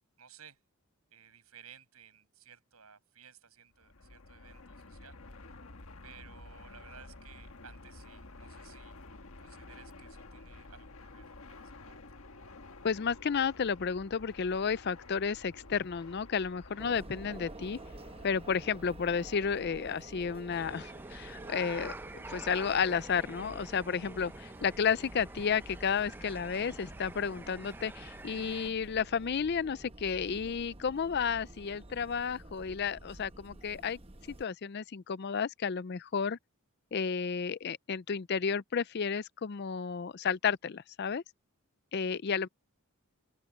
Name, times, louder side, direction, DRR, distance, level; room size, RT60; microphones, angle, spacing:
voice 1, 0.2-0.6 1.1-5.2 6.0-8.9 9.4-12.0, right 7 dB, 80° right, 6.8 m, -56 dB
Fixed-wing aircraft airplane, 3.7-20.1, left 2 dB, 70° left, 1.5 m, -51 dB
voice 2, 12.8-17.8 18.2-21.9 22.3-34.0 34.3-36.4 36.9-41.2 41.9-42.5, left 6 dB, 50° left, 0.4 m, -32 dB
sound 1, 16.8-34.4, right 2 dB, 25° right, 1.0 m, -49 dB
sound 2, 20.5-28.7, right 2 dB, 10° right, 0.6 m, -48 dB
open air
head